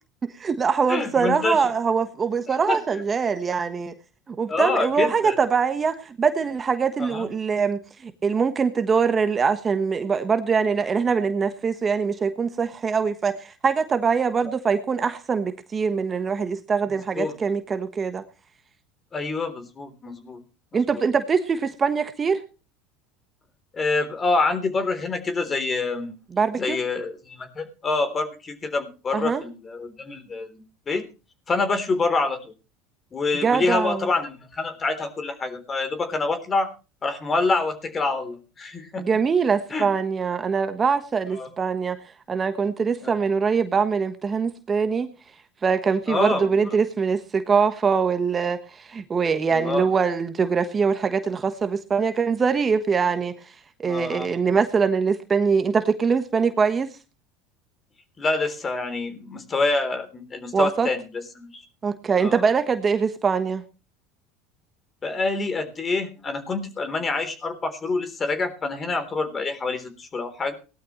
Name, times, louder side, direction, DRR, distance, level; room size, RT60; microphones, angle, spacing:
voice 1, 0.2-3.9 4.3-18.2 20.7-22.4 26.3-26.8 29.1-29.4 33.3-34.1 39.0-42.0 42.3-45.1 45.6-53.3 53.8-56.9 60.5-60.9 61.8-63.6, right 5 dB, 30° right, 9 dB, 1.3 m, -23 dB
voice 2, 0.9-1.6 2.5-2.8 4.5-5.4 7.0-7.3 17.2-17.3 19.1-20.4 20.7-21.0 23.7-26.1 26.6-30.5 30.9-31.0 31.5-32.5 33.1-36.7 37.0-39.0 39.7-39.9 41.3-41.5 43.0-43.1 46.1-46.5 49.5-49.9 53.8-54.3 58.2-61.6 62.2-62.5 65.0-70.6, left 3 dB, 30° left, 10 dB, 3.6 m, -26 dB
19.0 x 12.0 x 3.2 m, 0.33 s
hypercardioid pair, 85°, 0 cm